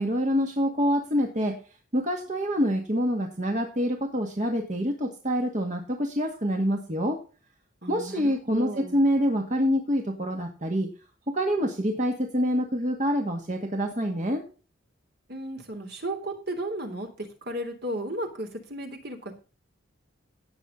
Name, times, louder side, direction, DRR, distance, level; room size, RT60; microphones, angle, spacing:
voice 1, 0.0-1.6 1.9-7.2 7.9-10.9 11.3-14.4, equal, 40° right, 3 dB, 2.0 m, -26 dB
voice 2, 7.8-9.0 15.3-19.3, right 1 dB, 55° right, 5 dB, 3.4 m, -34 dB
18.0 x 7.3 x 3.9 m, 0.34 s
head